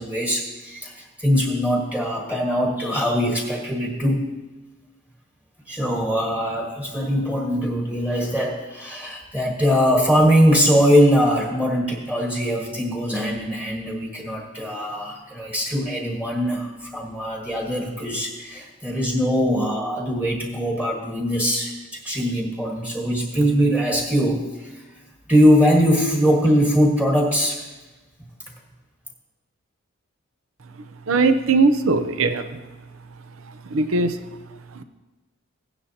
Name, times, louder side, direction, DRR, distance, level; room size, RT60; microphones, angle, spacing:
voice 1, 0.0-4.3 5.7-24.7 25.3-27.7, equal, 5° right, -1 dB, 1.5 m, -21 dB
voice 2, 31.1-32.5 33.7-34.2 34.7-34.8, right 3 dB, 70° right, 10 dB, 0.6 m, -19 dB
16.0 x 9.8 x 2.8 m, 1.2 s
head